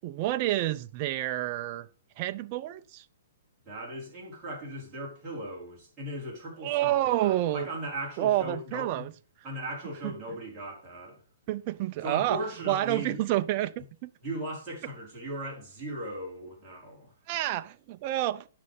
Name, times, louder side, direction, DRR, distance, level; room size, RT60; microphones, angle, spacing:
voice 1, 0.0-1.9 2.2-3.0 6.6-7.7 8.2-9.1 11.5-12.4 12.7-14.1 17.3-18.5, right 14 dB, 25° right, 0.5 m, -29 dB
voice 2, 3.6-9.1 9.4-11.2 12.0-13.2 14.2-17.1, right 1 dB, 10° right, 4.7 m, -38 dB
10.0 x 6.3 x 5.4 m
hypercardioid pair, 175°, 0 cm